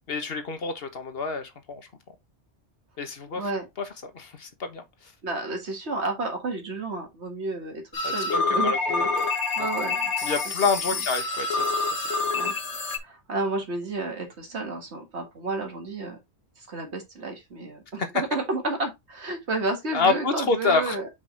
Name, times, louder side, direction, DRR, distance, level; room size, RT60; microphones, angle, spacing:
voice 1, 0.1-1.9 3.0-3.4 3.8-4.8 8.0-9.3 10.2-12.0 18.0-18.2 19.9-21.0, left 4 dB, 60° left, 1.4 m, -28 dB
voice 2, 5.2-10.1 10.9-11.0 12.3-12.6 13.0-16.2 16.6-21.1, right 2 dB, 75° right, 1.9 m, -31 dB
sound 1, 7.9-13.0, left 3 dB, 80° left, 1.6 m, -27 dB
5.4 x 5.1 x 3.8 m
omnidirectional pair, 1.2 m